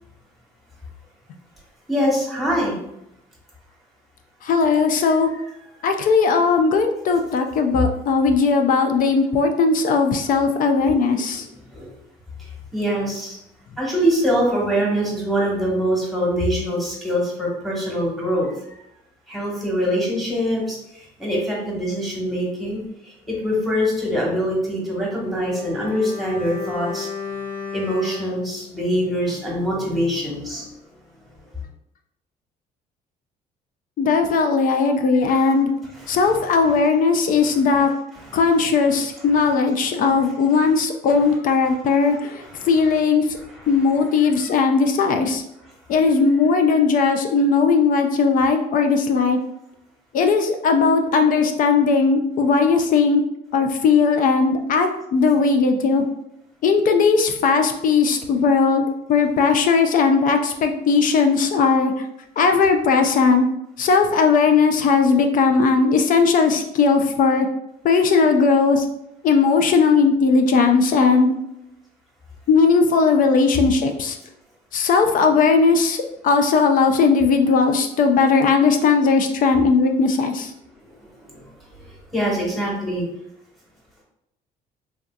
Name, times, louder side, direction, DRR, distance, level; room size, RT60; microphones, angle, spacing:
voice 1, 1.9-2.8 10.8-11.1 11.7-11.9 12.7-13.4 13.8-18.5 19.3-20.8 21.2-22.8 23.3-27.1 27.7-30.7 36.0-36.4 38.1-38.4 40.6-40.7 41.6-41.7 42.0-42.7 43.5-43.7 81.3-81.4 82.1-83.0, equal, ahead, -4 dB, 1.2 m, -24 dB
voice 2, 4.4-5.3 5.8-11.4 34.0-35.7 36.1-37.9 38.3-43.2 43.7-45.4 45.9-49.4 50.1-53.2 53.5-56.0 56.6-61.9 62.4-63.5 63.8-67.5 67.8-68.9 69.2-71.3 72.5-74.2 74.7-76.0 76.2-80.5, left 4 dB, 55° left, 5 dB, 0.4 m, -18 dB
Bowed string instrument, 25.2-29.7 29.9-30.1, left 6 dB, 85° left, 1.4 m, -34 dB
3.4 x 2.6 x 2.3 m, 0.82 s
cardioid pair, 110°, 17 cm